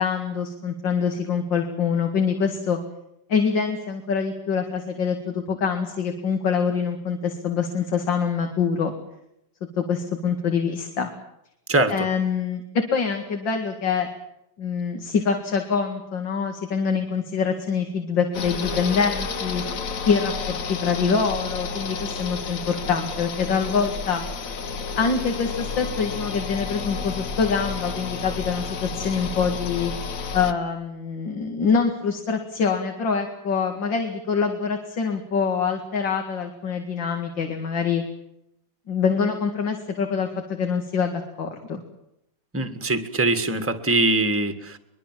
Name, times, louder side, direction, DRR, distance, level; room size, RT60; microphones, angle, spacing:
voice 1, 0.0-2.8 3.3-8.9 9.8-11.1 11.9-12.6 12.9-14.1 14.6-19.6 20.1-24.2 25.0-29.9 30.3-38.0 38.9-41.8, left 6 dB, 70° left, 4 dB, 2.9 m, -25 dB
voice 2, 11.7-12.1 42.5-44.8, right 2 dB, 5° right, 9 dB, 1.6 m, -22 dB
sound 1, 18.3-30.5, left 5 dB, 50° left, 1.4 m, -31 dB
23.0 x 22.5 x 7.5 m, 0.81 s
omnidirectional pair, 2.1 m